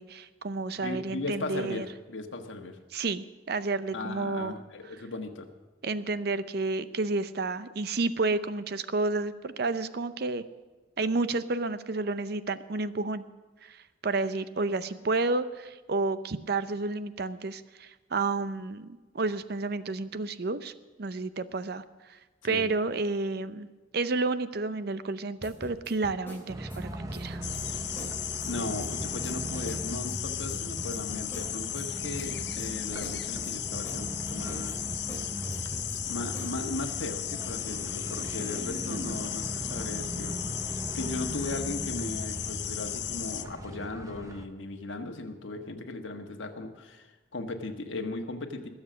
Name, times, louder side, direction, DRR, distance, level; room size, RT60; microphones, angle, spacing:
voice 1, 0.0-1.9 2.9-4.5 5.8-10.4 11.0-13.2 13.6-20.7 21.0-22.2 22.4-23.7 23.9-27.4 38.9-39.2, right 3 dB, 55° right, 13 dB, 0.6 m, -31 dB
voice 2, 0.8-2.8 3.9-5.5 22.4-22.7 28.4-34.8 36.1-40.4 40.9-48.7, left 2 dB, 85° left, 4 dB, 1.4 m, -37 dB
sound 1, 25.4-28.5 28.8-29.3 29.7-29.8 30.1-31.9 32.1-32.7 33.0-36.0 36.3-36.5, right 1 dB, 10° left, 2.6 m, -43 dB
sound 2, 26.5-44.5, right 1 dB, 15° right, 0.7 m, -39 dB
sound 3, 27.4-43.5, left 12 dB, 60° left, 0.6 m, -36 dB
21.0 x 7.3 x 6.3 m, 1.2 s
head